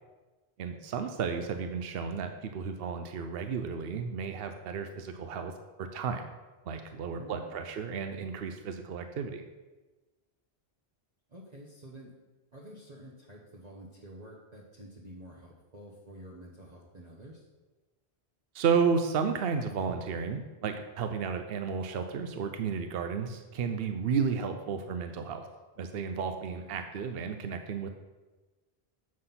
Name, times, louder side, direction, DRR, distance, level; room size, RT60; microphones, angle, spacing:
voice 1, 0.6-5.5 5.8-6.2 6.7-9.4 18.5-25.5 25.8-27.9, right 6 dB, 70° right, 7 dB, 0.9 m, -32 dB
voice 2, 7.1-7.6 11.3-12.1 12.5-17.5 26.5-26.7, right 1 dB, 40° right, -6 dB, 1.3 m, -49 dB
7.5 x 6.2 x 5.7 m, 1.2 s
omnidirectional pair, 1.1 m